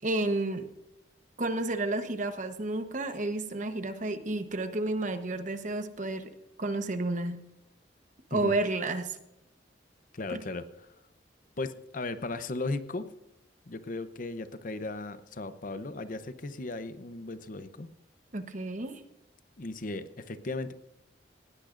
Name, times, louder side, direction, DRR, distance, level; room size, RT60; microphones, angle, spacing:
voice 1, 0.0-0.7 1.4-6.3 6.6-7.4 8.3-9.2 10.3-10.4 18.3-19.0, right 2 dB, 45° right, 9 dB, 1.0 m, -31 dB
voice 2, 10.1-10.9 11.6-13.1 13.7-17.9 19.6-20.7, left 2 dB, 50° left, 11 dB, 0.7 m, -36 dB
18.5 x 16.5 x 2.5 m, 0.89 s
head